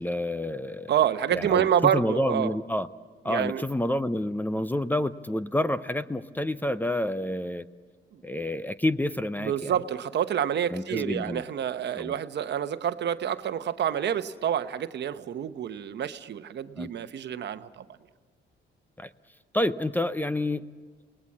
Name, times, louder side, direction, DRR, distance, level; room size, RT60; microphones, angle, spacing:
voice 1, 0.0-0.9 1.3-2.9 3.2-7.7 8.2-9.7 10.7-11.4 11.9-12.1 16.8-16.9 19.0-19.1 19.5-20.6, left 1 dB, 10° left, 13 dB, 0.7 m, -28 dB
voice 2, 0.9-2.5 3.3-3.6 8.1-8.2 9.4-17.8, right 9 dB, 60° right, 10 dB, 1.0 m, -28 dB
28.5 x 19.5 x 7.5 m, 1.5 s
cardioid pair, 90°, 20 cm